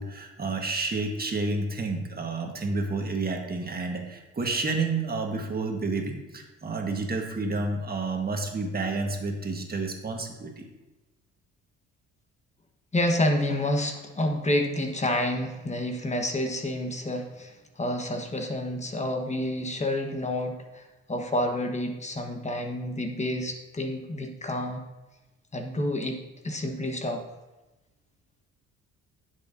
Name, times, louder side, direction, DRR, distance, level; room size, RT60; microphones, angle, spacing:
voice 1, 0.0-10.7, right 3 dB, 30° right, 2 dB, 1.6 m, -30 dB
voice 2, 12.9-20.8 21.1-24.8 25.5-26.2 26.4-27.2, left 1 dB, 20° left, 3 dB, 1.3 m, -29 dB
10.5 x 7.2 x 2.7 m, 1.1 s
supercardioid pair, 70°, 31 cm